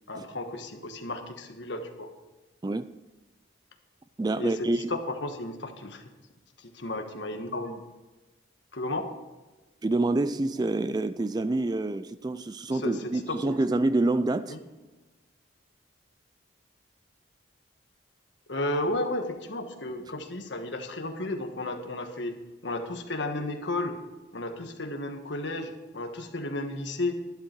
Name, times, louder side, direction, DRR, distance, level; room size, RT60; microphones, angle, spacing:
voice 1, 0.1-2.1 4.4-6.0 6.6-7.8 8.7-9.1 12.7-13.6 14.5-14.6 18.5-22.4 22.6-24.0 24.3-27.1, left 2 dB, 70° left, 5 dB, 1.4 m, -33 dB
voice 2, 4.2-5.0 9.8-14.6, right 2 dB, 20° right, 13 dB, 0.3 m, -27 dB
11.5 x 11.0 x 4.5 m, 1.2 s
head